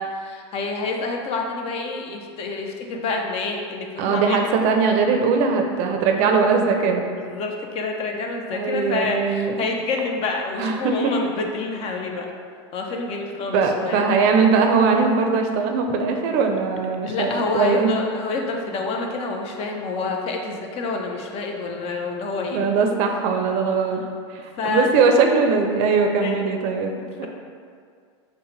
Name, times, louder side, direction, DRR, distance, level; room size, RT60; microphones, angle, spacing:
voice 1, 0.0-4.5 7.2-12.3 12.7-14.0 17.0-22.6 23.9-24.0 24.5-24.9 26.2-26.4, left 3 dB, 40° left, 2 dB, 0.5 m, -27 dB
voice 2, 4.0-7.1 8.5-9.6 10.6-10.9 13.5-17.3 17.5-17.9 22.5-24.0 24.3-27.3, right 5 dB, 55° right, 4 dB, 0.5 m, -20 dB
5.4 x 2.1 x 3.1 m, 2.2 s
supercardioid pair, 115°, 15 cm